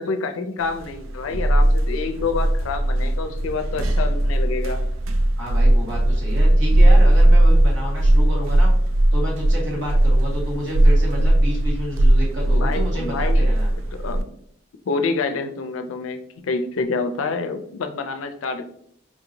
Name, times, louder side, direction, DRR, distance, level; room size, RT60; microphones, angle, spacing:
voice 1, 0.0-4.8 12.5-13.5 13.9-14.3 14.9-18.7, left 4 dB, 85° left, 8 dB, 0.4 m, -27 dB
sound 1, 0.7-14.2, right 1 dB, 85° right, 0.4 m, -18 dB
voice 2, 5.4-8.7 9.1-13.7, equal, 65° right, -4 dB, 1.5 m, -30 dB
4.5 x 2.8 x 2.6 m, 0.69 s
head